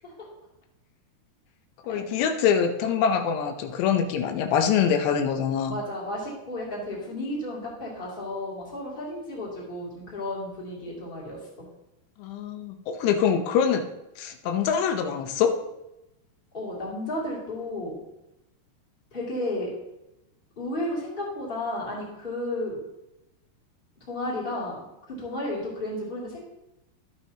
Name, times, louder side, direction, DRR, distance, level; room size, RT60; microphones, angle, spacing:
voice 1, 1.9-5.7 12.2-13.8 14.2-15.5, left 7 dB, 85° left, 6 dB, 3.1 m, -24 dB
voice 2, 5.7-11.4 16.5-18.0 19.1-19.7 20.6-22.8 24.1-26.4, left 1 dB, 15° left, -4 dB, 2.3 m, -33 dB
12.5 x 8.8 x 2.9 m, 0.90 s
omnidirectional pair, 4.8 m